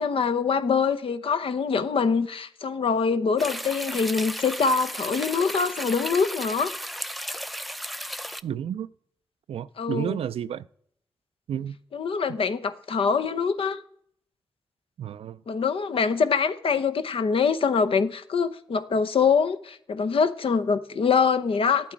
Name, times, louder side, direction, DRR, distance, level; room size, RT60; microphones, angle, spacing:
voice 1, 0.0-6.7 9.8-10.2 11.9-13.8 15.5-21.9, left 5 dB, 70° left, 0.7 m, -24 dB
sound 1, 3.4-8.4, equal, ahead, 0.5 m, -34 dB
voice 2, 8.4-8.9 9.5-10.7 11.5-11.8 12.3-12.4 15.0-15.4, right 9 dB, 80° right, 0.4 m, -31 dB
10.5 x 8.6 x 4.5 m
supercardioid pair, 40°, 10 cm